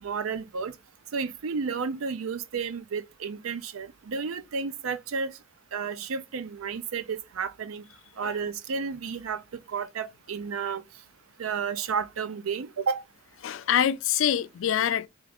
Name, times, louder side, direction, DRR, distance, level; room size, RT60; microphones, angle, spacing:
voice 1, 0.0-0.7 1.1-5.3 5.7-7.8 8.2-9.4 9.7-10.8 11.4-13.0, right 5 dB, 80° right, 0.5 m, -32 dB
voice 2, 13.4-15.1, left 9 dB, 65° left, 0.3 m, -25 dB
3.6 x 2.4 x 3.3 m
head